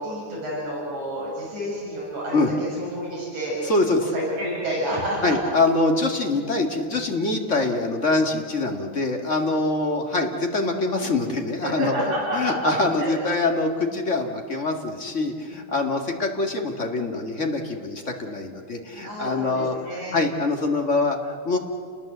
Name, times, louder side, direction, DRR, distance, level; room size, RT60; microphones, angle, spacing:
voice 1, 0.0-3.6 4.0-5.4 11.6-12.5 13.0-13.1 19.0-20.2, equal, 75° right, -5 dB, 8.2 m, -29 dB
voice 2, 3.6-4.1 5.2-11.9 12.3-19.7 20.1-21.6, left 2 dB, 30° left, 3 dB, 1.8 m, -24 dB
29.0 x 20.5 x 7.9 m, 2.2 s
omnidirectional pair, 3.4 m